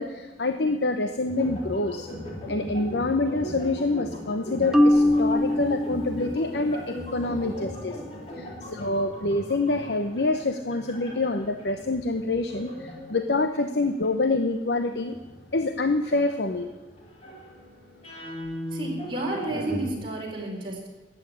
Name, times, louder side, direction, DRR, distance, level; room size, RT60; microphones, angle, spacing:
voice 1, 0.0-2.1 2.5-8.0 8.4-12.7 13.1-15.2 15.5-16.7, left 2 dB, 70° left, 8 dB, 0.8 m, -26 dB
sound 1, 1.3-14.1 15.1-19.9, equal, 35° left, 3.6 m, -38 dB
Marimba xylophone, 4.7-6.8, left 1 dB, 5° right, 0.6 m, -22 dB
voice 2, 12.7-13.0 18.7-20.9, right 2 dB, 30° right, -3 dB, 4.4 m, -32 dB
14.0 x 9.0 x 9.8 m, 1.2 s
head